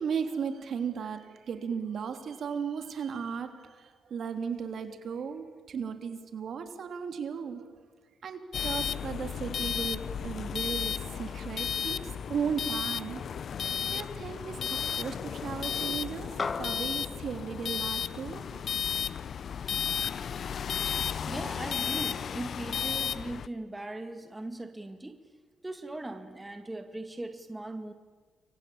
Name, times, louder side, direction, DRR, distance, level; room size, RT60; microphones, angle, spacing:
voice 1, 0.0-7.8 8.2-13.2 13.9-18.6, right 6 dB, 60° right, 6 dB, 3.2 m, -36 dB
sound 1, 8.5-23.5, left 7 dB, 55° left, 0.8 m, -33 dB
sound 2, 16.4-21.0, left 5 dB, 35° left, 1.2 m, -41 dB
voice 2, 21.3-25.2 25.6-27.9, right 2 dB, 15° right, 6 dB, 2.1 m, -39 dB
29.0 x 23.5 x 8.8 m, 1.5 s
cardioid pair, 90°, 0 cm